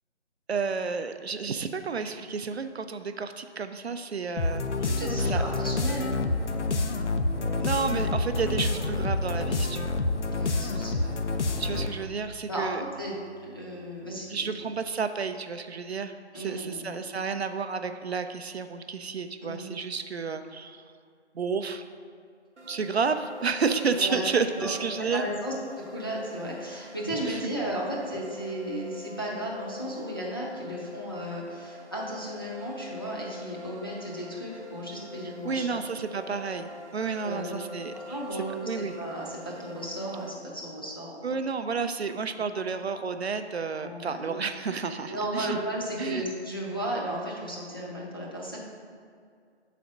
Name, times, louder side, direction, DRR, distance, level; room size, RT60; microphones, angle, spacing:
voice 1, 0.5-4.6 5.2-5.5 7.6-10.0 11.6-12.8 14.3-20.8 21.3-21.8 22.7-25.3 27.2-27.4 35.4-39.0 41.2-45.6 46.0-46.2, right 5 dB, 65° right, 9 dB, 0.5 m, -31 dB
sound 1, 4.4-12.1, left 2 dB, 85° left, 0.6 m, -28 dB
voice 2, 4.8-6.1 8.2-8.3 10.3-11.1 11.4-11.7 12.5-13.2 13.4-14.3 16.3-17.0 19.4-19.7 23.9-24.2 24.6-24.7 25.0-25.5 25.9-35.8 36.1-36.2 37.2-37.6 37.9-41.4 42.4-42.5 43.8-44.3 45.1-48.6, right 1 dB, 20° left, -4 dB, 0.6 m, -35 dB
sound 2, 7.2-15.0, equal, 45° right, 1.0 m, -46 dB
sound 3, 22.6-40.3, left 3 dB, 90° right, 0.8 m, -44 dB
5.2 x 4.1 x 5.8 m, 2.2 s
figure-of-eight pair, 165°, 34 cm